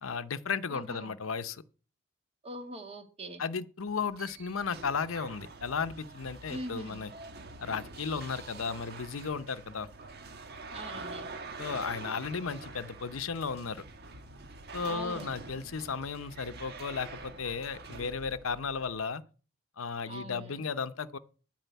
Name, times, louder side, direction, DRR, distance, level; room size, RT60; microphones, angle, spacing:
voice 1, 0.0-1.6 3.4-7.1 7.6-9.9 11.6-13.8 14.7-19.2 19.8-21.2, left 5 dB, 85° left, 0.8 m, -35 dB
voice 2, 0.7-1.1 2.4-3.4 6.5-7.0 10.7-11.3 14.8-15.3 20.1-20.6, right 1 dB, 30° right, 2.0 m, -42 dB
sound 1, 3.9-19.0, right 3 dB, 55° right, 1.3 m, -46 dB
12.5 x 5.0 x 8.1 m
head